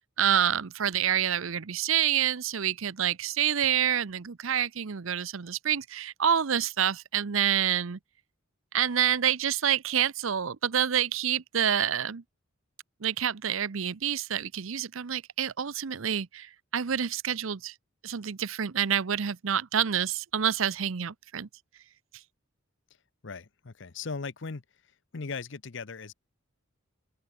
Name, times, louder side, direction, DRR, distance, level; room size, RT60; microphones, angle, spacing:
voice 1, 0.2-8.0 8.7-12.2 13.0-17.7 18.0-21.5, right 9 dB, 75° right, 0.7 m, -27 dB
voice 2, 23.2-26.1, left 4 dB, 60° left, 0.8 m, -38 dB
head